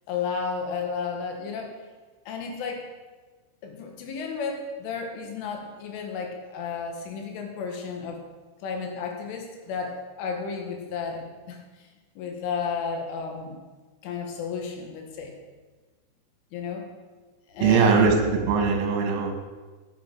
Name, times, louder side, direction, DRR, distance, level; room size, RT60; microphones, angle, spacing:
voice 1, 0.1-1.7 2.3-2.9 3.6-8.2 8.6-11.9 12.2-13.6 14.0-15.3 16.5-16.8 17.5-18.2, left 5 dB, 80° left, 2 dB, 4.1 m, -33 dB
voice 2, 17.6-19.3, right 5 dB, 75° right, 3 dB, 3.9 m, -21 dB
12.0 x 8.4 x 6.1 m, 1.3 s
omnidirectional pair, 5.6 m